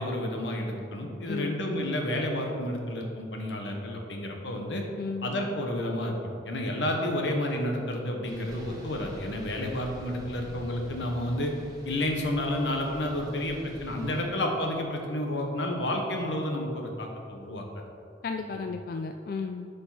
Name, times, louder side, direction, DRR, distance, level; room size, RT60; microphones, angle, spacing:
voice 1, 0.0-4.8 5.2-11.5 11.8-17.6 18.5-18.6, left 1 dB, 85° left, 2 dB, 1.2 m, -30 dB
voice 2, 1.3-1.6 4.9-5.3 18.2-19.7, left 4 dB, 55° left, 5 dB, 0.3 m, -34 dB
sound 1, 8.2-14.2, equal, 20° right, 1.3 m, -45 dB
10.5 x 5.4 x 4.1 m, 2.6 s
head